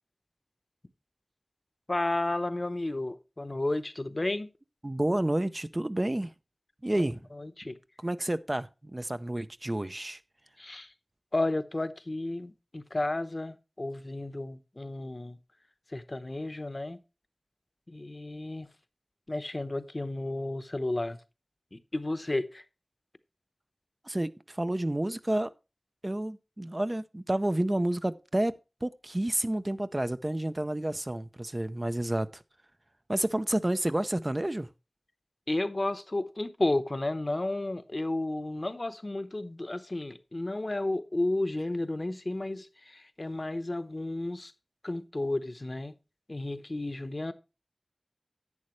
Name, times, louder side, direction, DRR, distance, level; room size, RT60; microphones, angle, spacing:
voice 1, 1.9-4.5 6.9-7.8 10.6-10.9 11.3-15.4 15.9-17.0 17.9-18.7 19.3-21.2 21.7-22.6 35.5-44.5 44.8-45.9 46.3-47.3, left 2 dB, 50° left, 0.9 m, -32 dB
voice 2, 4.8-6.3 6.8-7.2 8.0-10.2 24.0-25.5 26.0-32.4 33.1-34.7, right 1 dB, 35° right, 0.6 m, -30 dB
11.0 x 8.6 x 3.1 m
wide cardioid pair, 55°, 0 cm